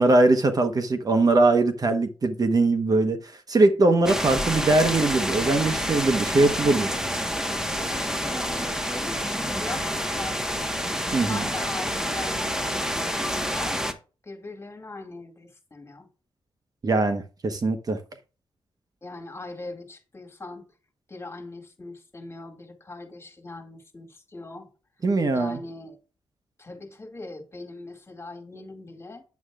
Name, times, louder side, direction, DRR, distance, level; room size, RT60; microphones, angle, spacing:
voice 1, 0.0-3.2 3.5-6.9 11.1-11.4 16.8-18.0 25.0-25.6, right 2 dB, 45° right, 1.1 m, -21 dB
sound 1, 4.0-13.9, equal, 5° right, 1.3 m, -28 dB
voice 2, 7.8-10.7 11.3-13.9 14.2-16.1 19.0-20.6 21.1-24.7 25.3-26.0 26.6-29.2, left 2 dB, 30° left, 2.3 m, -40 dB
9.5 x 7.9 x 2.4 m
cardioid pair, 95°, 9 cm